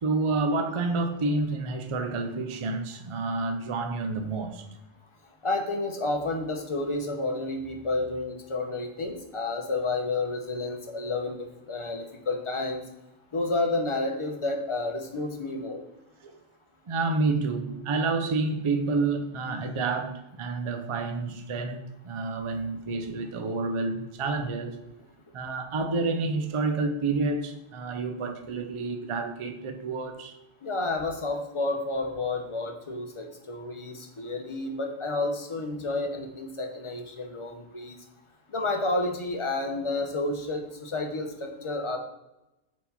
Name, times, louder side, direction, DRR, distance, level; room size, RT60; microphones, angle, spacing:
voice 1, 0.0-4.7 16.2-16.4 16.9-24.8 25.3-30.3, right 3 dB, 40° right, 0.5 m, -29 dB
voice 2, 5.4-11.4 11.6-12.8 13.3-15.8 30.6-38.0 38.5-42.0, left 2 dB, 30° left, 0.8 m, -30 dB
4.5 x 4.2 x 5.5 m
omnidirectional pair, 1.1 m